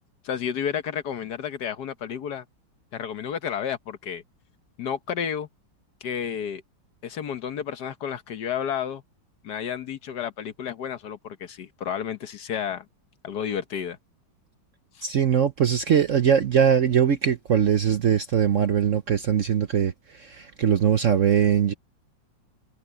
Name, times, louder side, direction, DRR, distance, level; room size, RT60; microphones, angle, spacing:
voice 1, 0.2-2.4 2.9-4.2 4.8-5.5 6.0-6.6 7.0-9.0 9.4-12.8 13.2-14.0 15.0-15.1, left 8 dB, 60° left, 1.5 m, -31 dB
voice 2, 15.0-21.7, right 8 dB, 55° right, 0.9 m, -21 dB
omnidirectional pair, 2.1 m